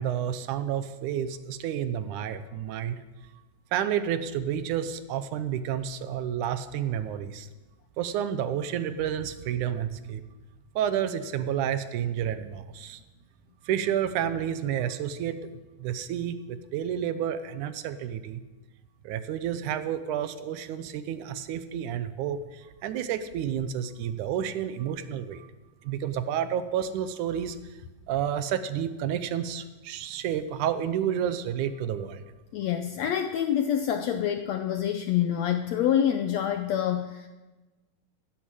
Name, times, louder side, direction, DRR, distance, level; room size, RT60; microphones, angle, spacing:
voice 1, 0.0-3.0 3.7-7.5 8.0-10.2 10.8-13.0 13.6-15.4 15.8-18.4 19.0-25.5 25.8-27.6 28.1-32.2, right 9 dB, 75° right, 12 dB, 2.1 m, -30 dB
voice 2, 32.5-37.3, left 10 dB, 85° left, 7 dB, 1.5 m, -26 dB
16.0 x 10.0 x 7.6 m, 1.2 s
omnidirectional pair, 4.0 m